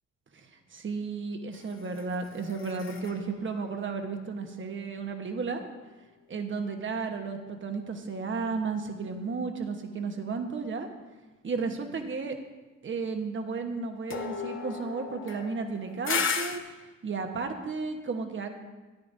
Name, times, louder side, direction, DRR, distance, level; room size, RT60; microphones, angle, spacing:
voice 1, 0.3-5.6 6.3-10.9 11.4-12.4 12.8-16.5 17.0-18.5, right 4 dB, 40° right, 5 dB, 1.3 m, -33 dB
sound 1, 1.5-5.0 14.1-16.6, left 6 dB, 40° left, 1.0 m, -36 dB
14.0 x 9.8 x 2.7 m, 1.2 s
cardioid pair, 90°, 30 cm